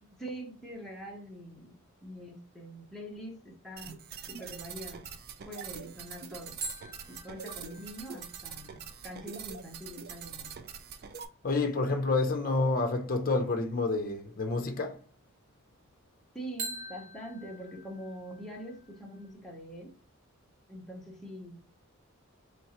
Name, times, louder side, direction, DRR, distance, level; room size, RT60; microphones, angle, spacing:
voice 1, 0.0-4.0 4.3-5.1 5.5-6.6 7.1-10.6 16.3-19.9 20.7-21.6, equal, ahead, 0.9 m, -44 dB
sound 1, 3.8-11.3, right 7 dB, 45° right, 0.4 m, -44 dB
sound 2, 6.6-10.1 16.6-19.3, right 2 dB, 65° right, 1.4 m, -45 dB
voice 2, 11.4-15.0, left 3 dB, 45° left, 0.6 m, -29 dB
4.3 x 3.2 x 2.9 m
head